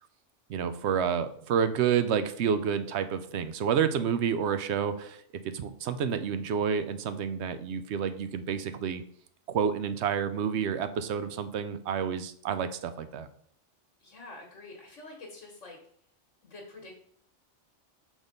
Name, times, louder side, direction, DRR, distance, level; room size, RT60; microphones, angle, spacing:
voice 1, 0.5-9.0 9.5-13.3, right 7 dB, 70° right, 11 dB, 0.8 m, -29 dB
voice 2, 14.0-15.8 16.4-16.9, left 2 dB, 80° left, 0 dB, 1.6 m, -46 dB
6.1 x 3.6 x 5.2 m, 0.62 s
omnidirectional pair, 1.2 m